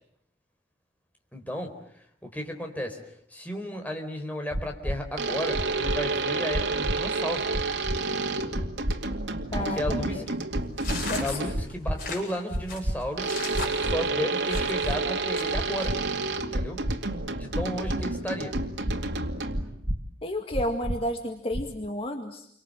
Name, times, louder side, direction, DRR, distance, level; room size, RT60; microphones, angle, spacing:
voice 1, 1.3-1.7 2.2-3.0 3.3-7.6 9.6-10.5 11.2-13.4 13.8-16.0 16.5-16.8 17.4-18.6, equal, 10° left, 4 dB, 4.4 m, -33 dB
sound 1, 4.5-5.0 5.5-6.0 6.5-7.0 7.5-8.0 8.5-9.0 9.5-9.9 10.5-11.0 11.5-12.0 12.5-13.0 13.5-14.0 14.5-15.0 15.5-16.0 16.5-16.9 17.5-18.0 18.5-19.0 19.5-20.0 20.5-21.0 21.5-21.8, equal, 50° right, 1.8 m, -29 dB
sound 2, 5.2-11.8 13.2-19.8, right 3 dB, 90° right, 2.4 m, -30 dB
voice 2, 9.5-10.2 11.1-11.4 20.2-22.5, left 1 dB, 35° left, 4 dB, 2.0 m, -31 dB
sound 3, 10.8-14.9 15.4-15.9, left 4 dB, 55° left, 7.9 m, -37 dB
30.0 x 25.0 x 7.8 m, 0.71 s
head